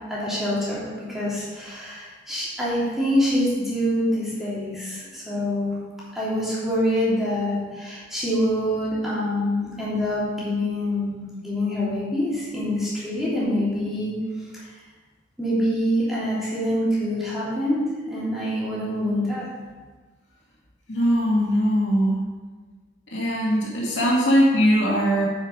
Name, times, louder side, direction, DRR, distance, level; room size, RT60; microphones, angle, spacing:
voice 1, 0.1-5.8 6.1-14.2 14.5-14.7 15.4-19.5, equal, ahead, -9 dB, 3.2 m, -25 dB
voice 2, 20.9-22.2 23.1-25.2, equal, 75° left, -4 dB, 2.5 m, -20 dB
10.5 x 5.8 x 5.4 m, 1.4 s
head